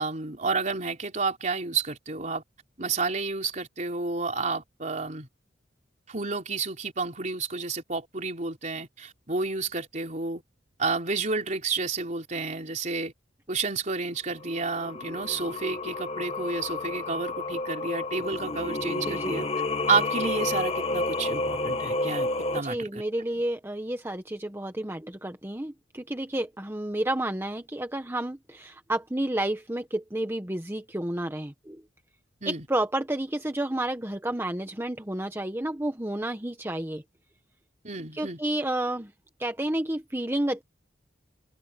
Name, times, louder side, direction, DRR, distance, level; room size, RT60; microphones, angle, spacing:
voice 1, 0.0-2.4 2.8-5.3 6.1-10.4 10.8-13.1 13.5-23.0 32.4-32.6 37.8-38.4, right 4 dB, 40° right, 3.7 m, -30 dB
Singing, 14.4-22.6, left 2 dB, 35° left, 1.8 m, -30 dB
voice 2, 19.0-19.4 22.6-31.8 32.4-37.0 38.1-39.1 39.4-40.6, right 1 dB, 15° right, 1.1 m, -30 dB
head